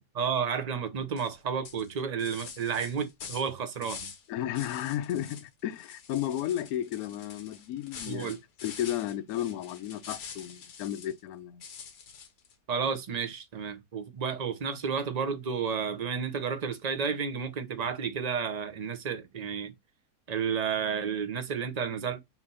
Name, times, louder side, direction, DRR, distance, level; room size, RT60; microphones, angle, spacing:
voice 1, 0.0-4.1 8.1-8.4 12.7-19.7 20.3-22.2, right 6 dB, 35° right, 0.6 m, -31 dB
sound 1, 1.2-1.3 1.6-4.3 4.5-5.5 5.8-11.2 11.6-12.5, left 6 dB, 90° left, 1.6 m, -46 dB
voice 2, 4.3-8.3 8.6-11.6, left 11 dB, 70° left, 1.1 m, -33 dB
6.0 x 2.8 x 5.5 m
omnidirectional pair, 1.7 m